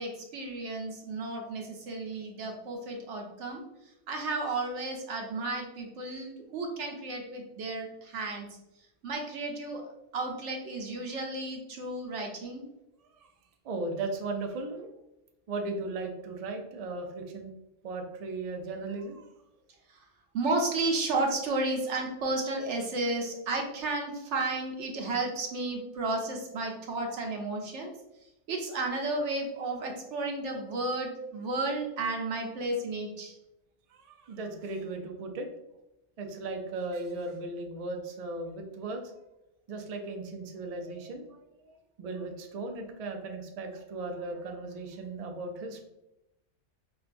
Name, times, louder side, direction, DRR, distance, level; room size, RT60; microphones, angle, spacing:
voice 1, 0.0-3.6 4.1-8.5 9.0-9.8 10.1-12.6 19.9-20.0 20.3-27.9 28.5-33.3, right 2 dB, 80° right, 1 dB, 1.0 m, -33 dB
voice 2, 13.6-14.9 15.5-17.5 17.8-19.3 33.9-35.5 36.2-39.0 39.7-45.8, right 3 dB, 60° right, 3 dB, 0.4 m, -37 dB
4.5 x 2.3 x 2.5 m, 0.90 s
omnidirectional pair, 1.2 m